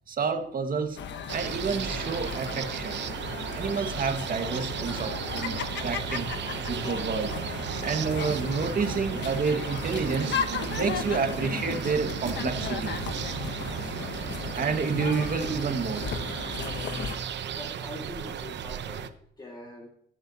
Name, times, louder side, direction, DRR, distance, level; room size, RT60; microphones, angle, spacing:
voice 1, 0.1-1.0 1.3-3.0 3.5-6.3 6.7-7.3 7.8-10.3 10.7-12.9 14.5-16.1, right 5 dB, 45° right, 5 dB, 1.9 m, -29 dB
sound 1, 1.0-17.2, left 7 dB, 65° left, 1.0 m, -36 dB
sound 2, 1.3-19.1, right 8 dB, 65° right, 0.9 m, -35 dB
voice 2, 17.5-19.9, left 2 dB, 20° left, -1 dB, 2.2 m, -43 dB
17.5 x 7.3 x 2.9 m, 0.66 s
cardioid pair, 90°, 20 cm